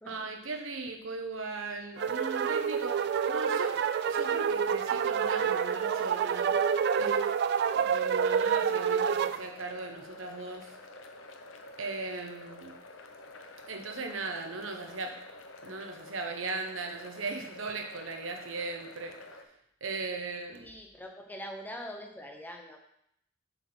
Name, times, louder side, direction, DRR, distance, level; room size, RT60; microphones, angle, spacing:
voice 1, 0.1-3.0 3.3-6.6 7.0-7.3 7.7-10.7 11.8-12.7 13.7-15.1 15.6-19.1 19.8-20.7, right 3 dB, 85° right, 4 dB, 1.0 m, -38 dB
sound 1, 1.9-19.4, left 2 dB, 70° left, 0.8 m, -49 dB
sound 2, 2.0-9.4, right 7 dB, 55° right, 0.3 m, -28 dB
voice 2, 20.5-22.8, equal, 10° left, 2 dB, 0.9 m, -43 dB
7.1 x 4.2 x 5.6 m, 0.74 s
head